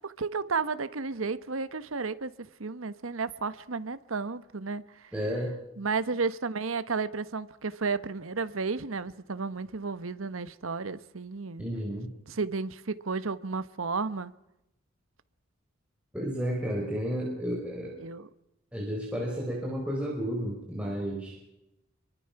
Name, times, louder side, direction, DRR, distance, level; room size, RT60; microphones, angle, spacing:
voice 1, 0.0-5.1 5.8-11.7 12.3-14.3 18.0-18.3, right 4 dB, 85° right, 1.1 m, -33 dB
voice 2, 5.1-5.6 11.6-12.1 16.1-18.0 18.7-21.4, equal, 5° right, 4.5 m, -32 dB
26.0 x 23.0 x 5.9 m
head